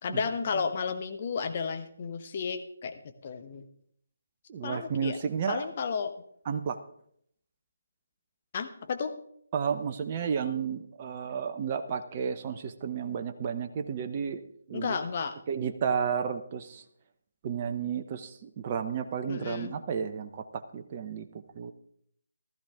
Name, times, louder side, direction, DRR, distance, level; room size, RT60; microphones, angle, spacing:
voice 1, 0.0-3.7 4.6-5.2 5.5-6.1 8.5-9.1 14.7-15.4 19.3-19.7, left 5 dB, 40° left, 7 dB, 1.1 m, -33 dB
voice 2, 4.5-5.7 6.5-6.8 9.5-14.4 14.7-15.0 15.5-16.8 17.4-21.3 21.5-21.7, right 7 dB, 30° right, 7 dB, 0.8 m, -32 dB
15.5 x 13.0 x 3.6 m, 0.68 s
figure-of-eight pair, 145°, 0 cm